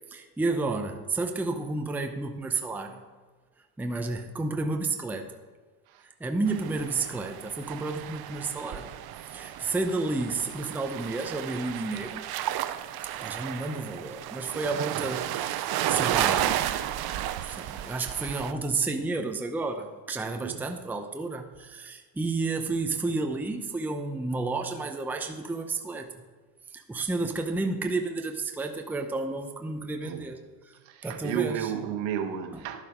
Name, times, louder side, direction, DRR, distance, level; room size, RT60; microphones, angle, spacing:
voice 1, 0.1-3.1 3.8-5.4 6.0-12.2 13.2-17.2 17.4-26.2 26.7-30.7 31.0-31.7 32.5-32.6, right 3 dB, 5° right, 5 dB, 0.6 m, -31 dB
sound 1, 6.5-18.5, right 12 dB, 50° right, 0.7 m, -33 dB
voice 2, 30.8-32.8, right 9 dB, 70° right, 6 dB, 1.4 m, -33 dB
12.0 x 7.4 x 5.1 m, 1.3 s
cardioid pair, 125°, 48 cm